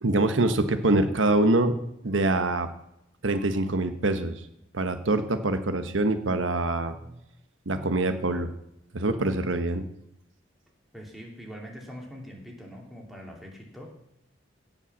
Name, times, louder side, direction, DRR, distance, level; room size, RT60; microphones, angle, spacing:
voice 1, 0.0-1.7 2.0-2.7 3.2-4.3 4.7-6.9 7.7-8.5 8.9-9.8, right 2 dB, 90° right, 9 dB, 1.1 m, -24 dB
voice 2, 10.9-13.9, equal, ahead, -2 dB, 2.8 m, -43 dB
17.0 x 5.7 x 7.3 m, 0.81 s
head